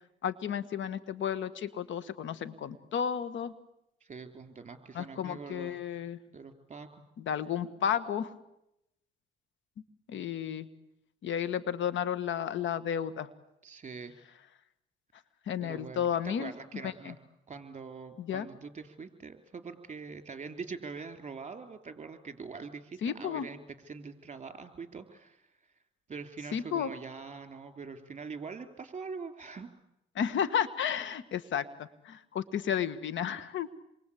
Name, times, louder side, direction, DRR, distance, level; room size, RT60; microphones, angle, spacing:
voice 1, 0.2-3.5 4.9-6.2 7.2-8.3 10.1-10.7 11.2-13.3 15.5-16.5 16.8-17.1 18.2-18.5 23.0-23.5 26.5-26.9 30.2-33.7, left 8 dB, 70° left, 14 dB, 1.7 m, -32 dB
voice 2, 4.0-5.8 6.3-7.0 13.6-14.1 15.6-17.1 17.5-23.6 23.9-25.5 26.1-29.7, right 5 dB, 35° right, 9 dB, 3.5 m, -43 dB
28.0 x 23.5 x 8.6 m, 0.85 s
cardioid pair, 90°, 20 cm